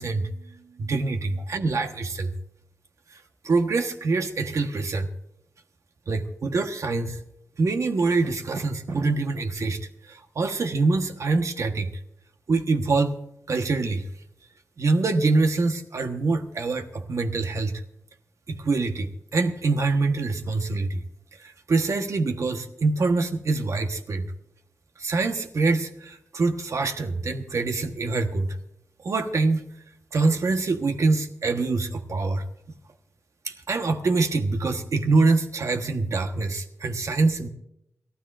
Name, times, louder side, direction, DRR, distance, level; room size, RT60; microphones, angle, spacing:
voice 1, 0.0-2.3 3.4-5.1 6.1-7.2 7.6-9.8 10.1-11.9 12.5-13.2 13.5-14.0 14.8-17.7 18.5-21.0 21.4-24.3 25.0-28.6 29.0-29.6 30.1-32.4 33.4-37.5, right 3 dB, 65° right, 6 dB, 1.2 m, -25 dB
28.5 x 13.0 x 2.5 m, 0.78 s
wide cardioid pair, 135°, 6 cm